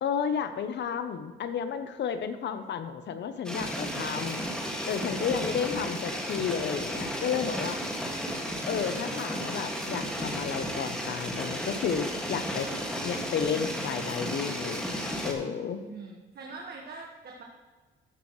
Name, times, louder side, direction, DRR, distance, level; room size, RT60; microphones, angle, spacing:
voice 1, 0.0-4.4 4.9-7.8 8.7-12.7 13.0-15.8, left 7 dB, 60° left, 10 dB, 0.8 m, -32 dB
sound 1, 3.5-15.3, equal, 5° left, 1.9 m, -33 dB
voice 2, 5.1-5.5 15.8-17.4, right 3 dB, 55° right, -1 dB, 1.5 m, -43 dB
14.0 x 7.2 x 3.2 m, 1.4 s
cardioid pair, 90°, 20 cm